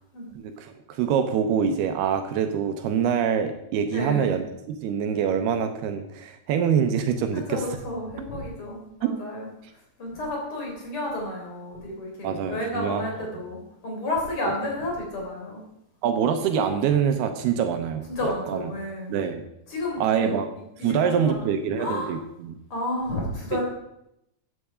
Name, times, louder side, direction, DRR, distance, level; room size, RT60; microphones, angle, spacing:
voice 1, 0.4-7.6 9.0-9.2 12.2-13.3 16.0-18.1 18.5-18.6 19.1-19.4 20.0-20.5 20.8-22.6, right 7 dB, 75° right, 7 dB, 2.7 m, -25 dB
voice 2, 3.9-4.3 7.3-9.5 10.0-15.6 18.1-19.1 19.7-20.4 20.8-21.5 21.8-22.2 22.7-23.6, left 1 dB, 30° left, -1 dB, 4.3 m, -31 dB
13.5 x 8.9 x 4.9 m, 0.82 s
omnidirectional pair, 4.9 m